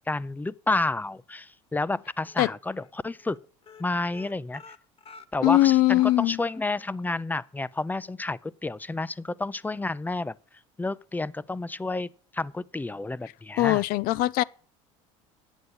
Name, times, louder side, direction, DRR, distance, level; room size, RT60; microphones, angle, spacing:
voice 1, 0.0-3.4 3.8-4.6 5.3-10.3 10.8-12.1 12.3-13.8, left 2 dB, 10° left, 0.5 m, -30 dB
sound 1, 1.8-2.4 2.7-2.9 3.2-3.4 3.6-6.6 7.0-7.1 7.5-7.6, left 5 dB, 35° left, 0.9 m, -49 dB
voice 2, 5.4-6.4 13.6-14.4, left 16 dB, 60° left, 0.5 m, -21 dB
9.6 x 8.1 x 7.1 m
hypercardioid pair, 80°, 16 cm